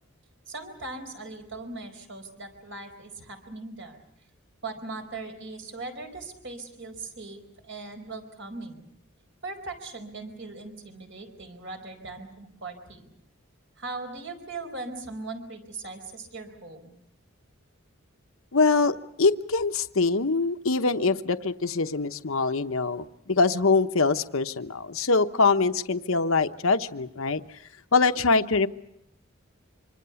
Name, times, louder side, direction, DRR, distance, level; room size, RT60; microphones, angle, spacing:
voice 1, 0.5-4.0 4.6-8.8 9.4-13.1 13.8-17.0, right 3 dB, 55° right, 6 dB, 4.6 m, -39 dB
voice 2, 18.5-27.4 27.9-28.7, left 4 dB, 65° left, 9 dB, 0.9 m, -24 dB
25.5 x 25.0 x 7.0 m, 0.75 s
head